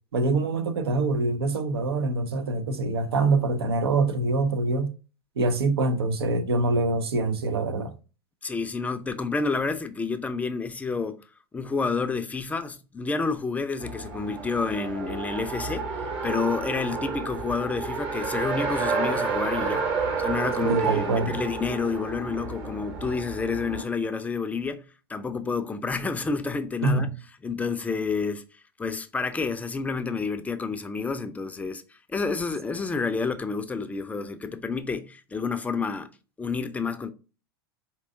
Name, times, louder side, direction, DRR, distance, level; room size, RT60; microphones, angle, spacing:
voice 1, 0.1-4.9 5.4-7.9 20.7-21.4 26.8-27.1, right 3 dB, 80° right, 0.6 m, -25 dB
voice 2, 8.4-11.2 11.5-16.0 16.2-19.9 20.2-24.8 25.1-27.1 27.4-28.4 28.8-31.8 32.1-36.1 36.4-37.1, left 4 dB, 10° left, 0.4 m, -29 dB
Race car auto racing, 13.8-23.8, right 4 dB, 45° right, 1.0 m, -30 dB
4.5 x 2.7 x 2.5 m
hypercardioid pair, 95°, 13 cm